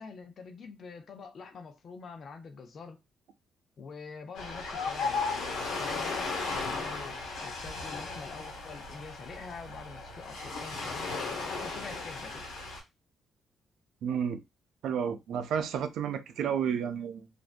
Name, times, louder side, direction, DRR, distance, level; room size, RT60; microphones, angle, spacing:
voice 1, 0.0-3.0 3.8-12.5, left 5 dB, 55° left, 0.5 m, -46 dB
Ocean, 4.3-12.8, left 4 dB, 85° left, 1.1 m, -35 dB
voice 2, 14.0-14.4 14.8-17.3, right 8 dB, 80° right, 0.4 m, -31 dB
2.6 x 2.1 x 2.4 m
cardioid pair, 90°, 0 cm